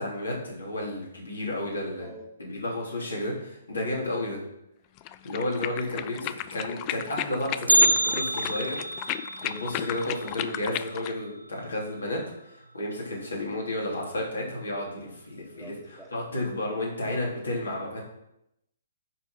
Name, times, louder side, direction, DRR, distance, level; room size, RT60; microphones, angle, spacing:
voice 1, 0.0-2.1 2.4-4.4 5.2-8.8 9.4-12.2 12.4-18.0, left 1 dB, 70° left, -2 dB, 3.2 m, -32 dB
sound 1, 5.0-11.2, left 13 dB, 30° left, 0.4 m, -35 dB
Bell, 7.7-11.8 12.0-12.1 12.6-12.7 13.5-13.6 14.4-14.7 15.0-15.1, right 1 dB, 85° right, 0.5 m, -27 dB
voice 2, 15.5-16.1, right 2 dB, ahead, -1 dB, 1.9 m, -47 dB
10.0 x 4.5 x 6.0 m, 0.82 s
figure-of-eight pair, 125°, 0 cm